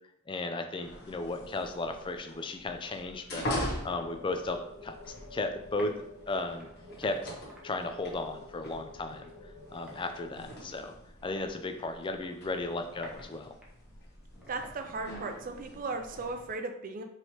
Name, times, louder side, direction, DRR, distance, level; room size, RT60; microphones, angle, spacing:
voice 1, 0.3-3.5 3.8-4.9 5.3-5.9 6.3-6.7 7.0-7.2 7.6-10.9 11.2-13.5, left 2 dB, 25° left, 6 dB, 0.3 m, -35 dB
sound 1, 0.8-16.5, equal, 50° left, 1.1 m, -43 dB
sound 2, 3.8-10.3, left 2 dB, 80° right, 1.1 m, -50 dB
sound 3, 5.0-16.4, equal, 5° right, 0.8 m, -57 dB
voice 2, 14.5-17.0, right 3 dB, 40° right, 6 dB, 0.4 m, -36 dB
4.5 x 3.2 x 2.9 m, 0.76 s
head